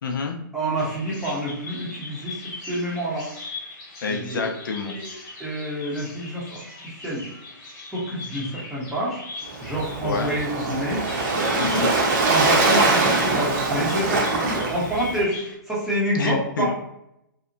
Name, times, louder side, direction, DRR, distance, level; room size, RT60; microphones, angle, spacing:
voice 1, 0.0-0.4 4.0-5.0 10.0-10.3 11.6-11.9 16.1-16.7, left 4 dB, 65° left, 3 dB, 0.5 m, -27 dB
voice 2, 0.5-3.3 4.1-4.5 4.9-5.1 5.4-7.3 7.9-9.2 9.6-11.0 12.3-15.4 15.7-16.7, right 1 dB, ahead, -7 dB, 0.7 m, -28 dB
Bird vocalization bird call bird song, 0.8-15.6, left 3 dB, 25° left, 1.0 m, -40 dB
Waves surf, 9.5-15.2, right 3 dB, 55° right, 0.7 m, -22 dB
2.7 x 2.1 x 2.5 m, 0.82 s
hypercardioid pair, 140°, 12 cm